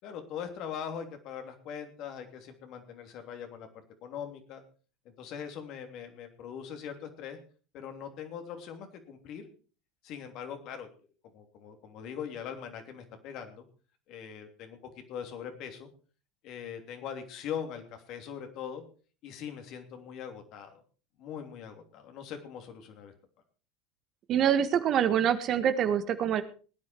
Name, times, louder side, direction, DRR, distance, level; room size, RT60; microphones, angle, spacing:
voice 1, 0.0-3.7 4.0-4.6 5.2-7.4 7.7-9.5 10.0-10.9 11.3-13.6 14.1-14.8 15.1-15.9 16.4-18.8 19.2-20.8 21.2-23.1, left 8 dB, 55° left, 6 dB, 3.0 m, -41 dB
voice 2, 24.3-26.4, right 9 dB, 50° right, 11 dB, 1.6 m, -25 dB
18.5 x 9.8 x 4.6 m, 0.38 s
hypercardioid pair, 80°, 0 cm